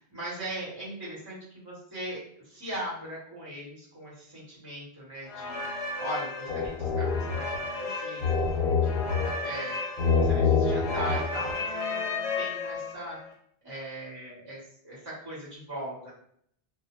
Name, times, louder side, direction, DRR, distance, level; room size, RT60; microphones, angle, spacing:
voice 1, 0.0-13.2 13.6-16.1, right 1 dB, 25° right, -8 dB, 0.8 m, -39 dB
sound 1, 5.3-13.1, left 4 dB, 90° left, 0.9 m, -28 dB
2.1 x 2.1 x 2.9 m, 0.65 s
omnidirectional pair, 1.1 m